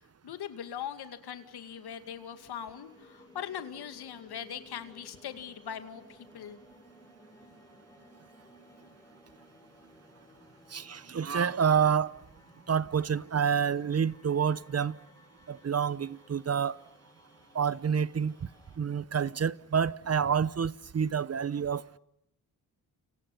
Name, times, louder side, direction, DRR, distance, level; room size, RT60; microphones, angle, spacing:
voice 1, 0.2-6.6, left 9 dB, 90° left, 2.4 m, -41 dB
sound 1, 1.1-18.8, left 1 dB, 10° left, 6.1 m, -58 dB
voice 2, 10.7-12.1 12.7-15.0 15.5-16.8 17.5-18.3 18.8-22.0, right 7 dB, 40° right, 0.9 m, -28 dB
29.5 x 27.0 x 5.5 m
cardioid pair, 90°, 38 cm